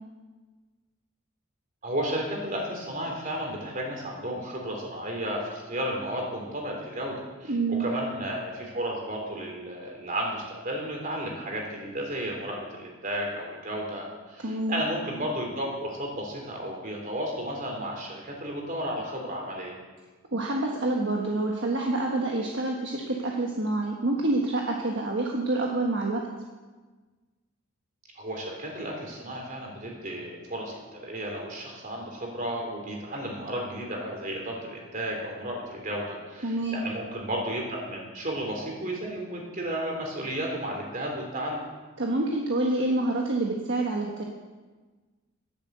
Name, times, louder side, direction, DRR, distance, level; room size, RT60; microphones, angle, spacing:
voice 1, 1.8-19.8 28.2-41.6, right 1 dB, 40° right, 0 dB, 3.5 m, -33 dB
voice 2, 7.5-7.8 14.4-14.8 20.3-26.2 36.4-36.8 42.0-44.2, right 2 dB, 55° right, -1 dB, 1.4 m, -27 dB
10.5 x 10.5 x 8.0 m, 1.3 s
head